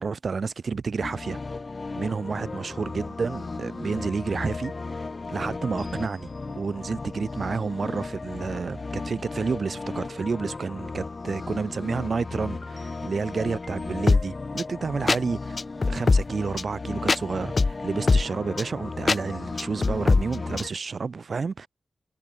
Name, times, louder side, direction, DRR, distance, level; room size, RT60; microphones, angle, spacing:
voice 1, 0.0-1.4 1.9-15.6 15.9-21.7, right 5 dB, 70° right, 2.9 m, -30 dB
sound 1, 1.0-20.7, left 3 dB, 50° left, 0.5 m, -29 dB
cardioid pair, 55°, 0 cm